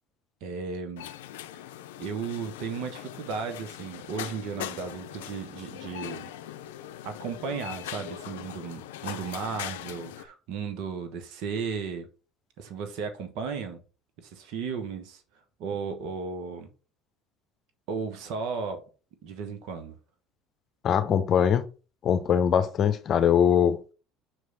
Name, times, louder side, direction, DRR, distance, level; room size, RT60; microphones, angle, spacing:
voice 1, 0.4-1.1 2.0-6.3 7.0-12.1 12.6-13.8 14.2-15.2 15.6-16.7 17.9-18.9 19.2-20.0, right 5 dB, 65° right, 1.1 m, -35 dB
sound 1, 1.0-10.3, left 12 dB, 85° left, 0.5 m, -40 dB
voice 2, 20.8-21.6 22.0-23.8, left 8 dB, 50° left, 0.8 m, -22 dB
6.4 x 3.2 x 5.3 m
hypercardioid pair, 80°, 0 cm